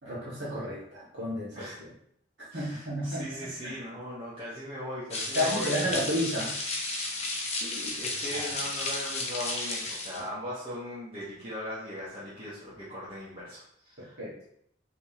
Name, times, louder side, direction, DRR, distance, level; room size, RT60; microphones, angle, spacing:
voice 1, 0.0-1.9 2.4-3.8 5.3-6.6 8.3-8.5 14.2-14.3, equal, 65° right, -10 dB, 1.7 m, -32 dB
voice 2, 2.5-6.0 7.0-14.2, equal, 30° right, -10 dB, 1.1 m, -39 dB
sound 1, 5.1-10.3, left 2 dB, 35° left, 0.8 m, -33 dB
5.2 x 3.4 x 2.9 m, 0.72 s
head